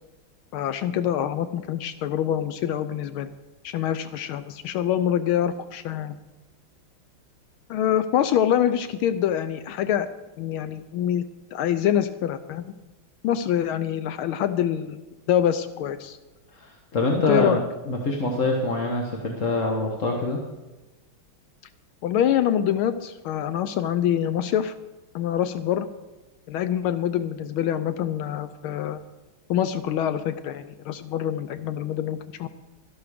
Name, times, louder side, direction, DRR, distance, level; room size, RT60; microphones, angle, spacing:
voice 1, 0.5-3.3 3.6-6.2 7.7-10.1 10.4-11.2 11.5-12.7 13.2-15.0 15.3-16.2 17.3-17.6 22.0-24.7 25.1-25.9 26.5-29.0 29.5-32.5, left 10 dB, 80° left, 11 dB, 1.5 m, -25 dB
voice 2, 16.5-20.4, left 2 dB, 40° left, 0 dB, 1.6 m, -25 dB
13.5 x 11.5 x 5.0 m, 1.1 s
omnidirectional pair, 2.3 m